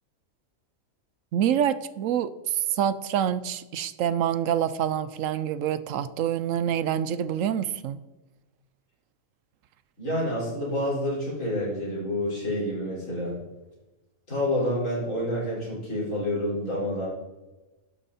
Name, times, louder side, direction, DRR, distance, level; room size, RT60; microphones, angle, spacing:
voice 1, 1.3-8.0, right 9 dB, 75° right, 15 dB, 0.9 m, -26 dB
voice 2, 10.0-13.4 14.3-17.1, left 1 dB, 70° left, -6 dB, 5.2 m, -28 dB
11.5 x 9.0 x 4.2 m, 1.1 s
omnidirectional pair, 1.4 m